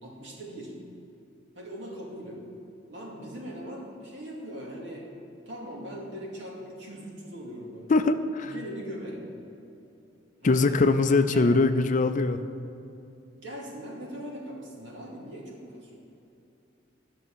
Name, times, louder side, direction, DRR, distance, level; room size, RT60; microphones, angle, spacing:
voice 1, 0.0-0.7 1.5-2.4 2.9-5.1 5.5-8.0 8.4-9.3 10.4-10.8 11.2-11.4 13.3-15.9, equal, 70° right, -3 dB, 2.4 m, -40 dB
voice 2, 7.9-8.5 10.4-12.4, left 3 dB, 40° left, 10 dB, 0.4 m, -22 dB
12.5 x 6.3 x 6.3 m, 2.8 s
head